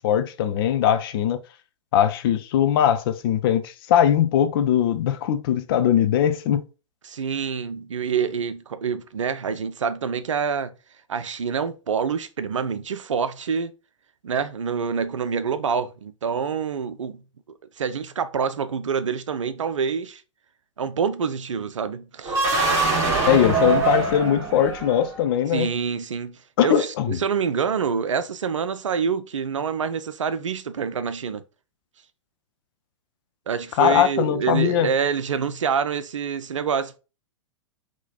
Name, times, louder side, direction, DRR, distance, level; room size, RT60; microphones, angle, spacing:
voice 1, 0.0-1.4 1.9-6.6 23.3-25.7 26.6-27.2 33.8-34.9, left 10 dB, 45° left, 0.6 m, -20 dB
voice 2, 7.0-10.8 11.1-13.7 14.2-17.2 17.8-20.2 20.8-22.4 25.5-31.4 33.5-37.0, right 6 dB, 75° right, 0.6 m, -26 dB
sound 1, 22.2-25.2, right 4 dB, 20° right, 2.0 m, -23 dB
4.0 x 3.0 x 4.1 m
figure-of-eight pair, 105°, 16 cm